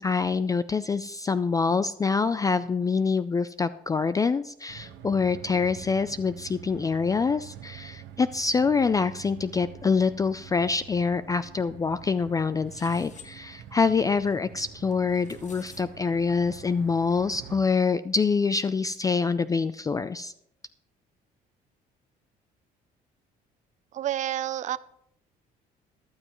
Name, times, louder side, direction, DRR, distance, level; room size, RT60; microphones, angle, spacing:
voice 1, 0.0-20.3, left 5 dB, 20° left, 14 dB, 0.3 m, -25 dB
sound 1, 4.7-17.6, right 10 dB, 85° right, 1.0 m, -46 dB
sound 2, 12.7-13.3 14.9-15.8, left 7 dB, 45° left, 1.3 m, -50 dB
voice 2, 23.9-24.8, right 12 dB, 45° right, 16 dB, 0.5 m, -29 dB
13.5 x 12.0 x 3.0 m, 0.71 s
cardioid pair, 110°, 17 cm